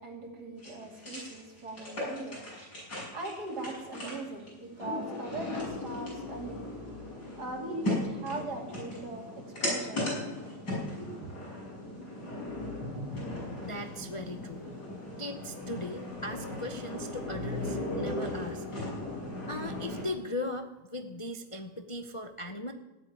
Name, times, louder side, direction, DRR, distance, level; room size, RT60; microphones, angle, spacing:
voice 1, 0.0-2.5 3.1-6.7 7.4-10.1 11.0-11.3, right 2 dB, 60° right, 1 dB, 3.1 m, -40 dB
sound 1, 0.6-20.1, left 1 dB, 65° left, 7.1 m, -37 dB
voice 2, 13.6-14.6 15.2-18.6 19.5-22.7, left 1 dB, 25° left, 5 dB, 0.6 m, -38 dB
15.5 x 8.5 x 10.0 m, 1.1 s
omnidirectional pair, 1.9 m